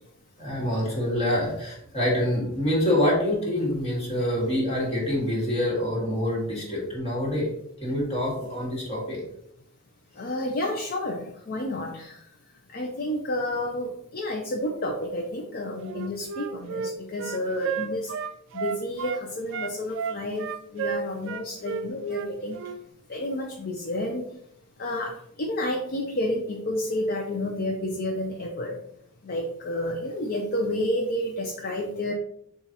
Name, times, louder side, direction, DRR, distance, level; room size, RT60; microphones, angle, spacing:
voice 1, 0.4-7.5 7.8-9.2, left 1 dB, 30° left, -4 dB, 1.7 m, -26 dB
voice 2, 10.2-12.2 12.7-18.1 18.5-22.6 23.1-24.2 24.8-25.1 25.4-28.8 29.2-32.1, left 1 dB, 45° left, 1 dB, 0.6 m, -30 dB
Wind instrument woodwind instrument, 15.8-19.2 19.5-22.8, right 7 dB, 60° right, 0.3 m, -32 dB
7.0 x 2.4 x 2.9 m, 0.75 s
head